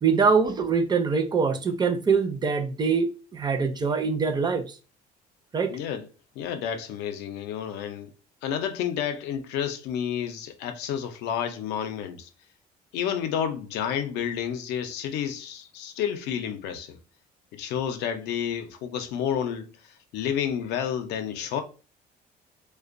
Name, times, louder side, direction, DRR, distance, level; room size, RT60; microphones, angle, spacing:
voice 1, 0.0-4.8 5.5-5.8, right 5 dB, 25° right, 0.4 m, -24 dB
voice 2, 5.7-6.1 6.4-8.1 8.4-12.3 12.9-17.0 17.5-21.6, left 8 dB, 85° left, 0.5 m, -30 dB
2.5 x 2.1 x 2.5 m
cardioid pair, 110°, 17 cm